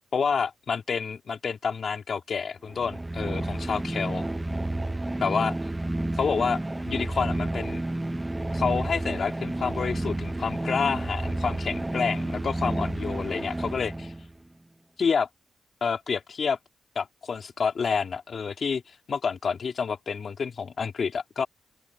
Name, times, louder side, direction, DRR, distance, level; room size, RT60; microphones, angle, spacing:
voice 1, 0.1-4.3 5.2-5.5 6.2-7.8 8.5-14.1 15.0-15.3 15.8-16.6 16.9-21.5, left 6 dB, 50° left, 2.7 m, -29 dB
sound 1, 2.7-14.3, right 1 dB, 10° right, 0.8 m, -30 dB
open air
wide cardioid pair, 145°, 0 cm